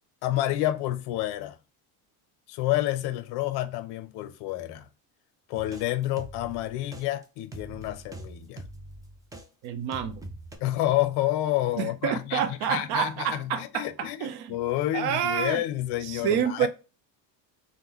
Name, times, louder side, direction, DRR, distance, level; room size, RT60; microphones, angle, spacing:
voice 1, 0.2-1.6 2.5-4.9 5.5-8.6 10.6-12.4 12.7-16.7, left 14 dB, 65° left, 0.5 m, -29 dB
sound 1, 5.6-9.5 9.9-10.6, right 1 dB, 10° right, 0.4 m, -43 dB
voice 2, 9.6-10.3 11.8-14.5 14.9-15.6 16.0-16.7, right 8 dB, 60° right, 0.7 m, -28 dB
3.6 x 2.1 x 2.9 m
cardioid pair, 115°, 42 cm